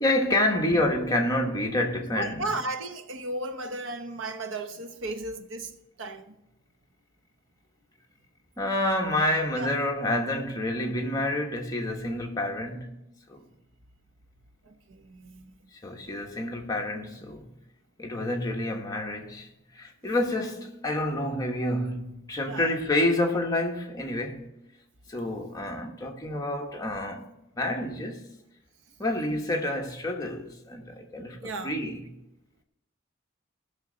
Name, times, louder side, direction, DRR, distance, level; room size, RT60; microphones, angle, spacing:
voice 1, 0.0-2.5 8.6-13.0 13.3-13.4 15.8-17.5 18.0-24.5 25.1-27.2 27.6-28.2 29.0-32.0, left 1 dB, 20° left, 1.2 m, -28 dB
voice 2, 2.1-6.4 9.6-9.7 14.6-15.5 22.5-22.7 31.4-31.7, right 2 dB, 75° right, 1.0 m, -35 dB
17.0 x 6.4 x 4.0 m
head